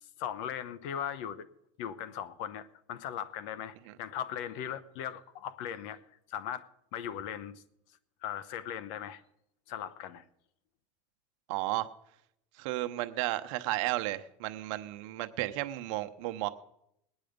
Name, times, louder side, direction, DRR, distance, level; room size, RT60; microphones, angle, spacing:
voice 1, 0.2-1.5 1.8-6.0 6.3-7.6 8.2-9.2 9.7-10.2, left 9 dB, 65° left, 17 dB, 0.9 m, -38 dB
voice 2, 11.5-11.9 12.6-16.5, right 17 dB, 70° right, 9 dB, 0.9 m, -33 dB
20.0 x 9.1 x 5.2 m, 0.79 s
supercardioid pair, 130°, 17 cm